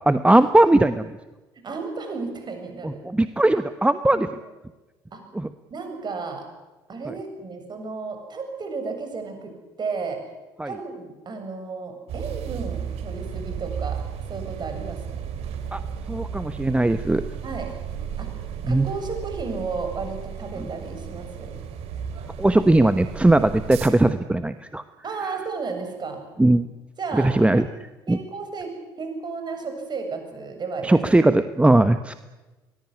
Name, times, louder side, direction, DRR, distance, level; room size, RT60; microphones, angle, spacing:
voice 1, 0.1-1.1 2.8-4.3 5.3-5.5 7.1-7.2 10.6-10.7 15.7-15.8 16.1-17.2 18.7-18.9 22.4-24.8 26.4-26.7 27.1-27.7 28.1-28.2 30.8-32.1, right 2 dB, 10° right, 11 dB, 1.1 m, -19 dB
voice 2, 1.6-3.0 4.1-4.3 5.1-5.2 5.7-6.4 6.9-10.2 10.6-14.0 14.3-15.2 17.4-17.7 18.2-18.3 18.7-21.5 25.0-26.2 27.0-27.7 28.1-28.7 29.0-31.0, right 4 dB, 40° right, 5 dB, 7.6 m, -33 dB
sound 1, 12.1-23.9, right 7 dB, 60° right, 3.2 m, -34 dB
23.0 x 19.5 x 9.9 m, 1.1 s
hypercardioid pair, 55°, 12 cm